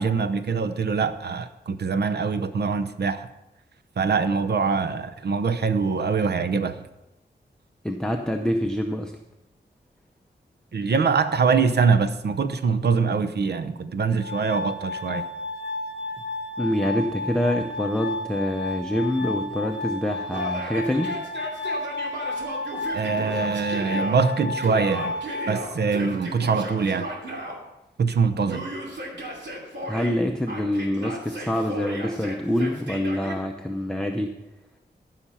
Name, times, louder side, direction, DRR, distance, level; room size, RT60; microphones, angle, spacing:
voice 1, 0.0-3.3 4.0-6.8 10.7-15.2 22.9-25.1 25.5-27.1 28.0-28.7, right 5 dB, 65° right, 11 dB, 0.7 m, -23 dB
voice 2, 7.8-9.1 16.6-21.1 29.9-34.3, equal, 5° left, 3 dB, 0.6 m, -26 dB
Glass, 14.2-26.2, left 2 dB, 80° left, 0.7 m, -32 dB
Yell, 20.3-24.2 24.6-27.6 28.5-30.2 30.5-33.4, right 1 dB, 85° right, 2.7 m, -35 dB
14.5 x 5.8 x 5.6 m, 0.95 s
wide cardioid pair, 145°, 18 cm